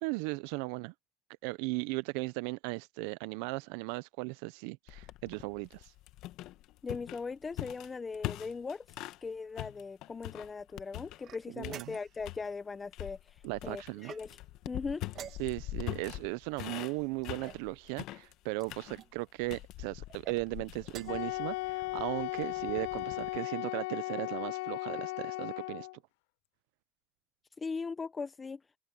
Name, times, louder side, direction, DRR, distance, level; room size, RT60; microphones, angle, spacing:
voice 1, 0.0-0.9 1.4-5.9 11.5-12.0 13.4-14.1 15.4-25.9, right 25 dB, 75° right, 0.4 m, -37 dB
sound 1, 4.9-9.2 9.6-11.3 11.6-12.5 12.9-23.4, left 17 dB, 60° left, 1.3 m, -43 dB
voice 2, 6.8-14.4 14.7-15.0 27.6-28.6, left 4 dB, 20° left, 0.7 m, -39 dB
sound 2, 11.2-12.3 14.0-14.6 15.1-15.8 16.7-17.7 18.5-19.1 20.1-20.4 20.8-21.3, right 10 dB, 45° right, 1.7 m, -50 dB
Wind instrument woodwind instrument, 21.1-26.0, left 22 dB, 80° left, 0.3 m, -36 dB
open air
supercardioid pair, 125°, 0 cm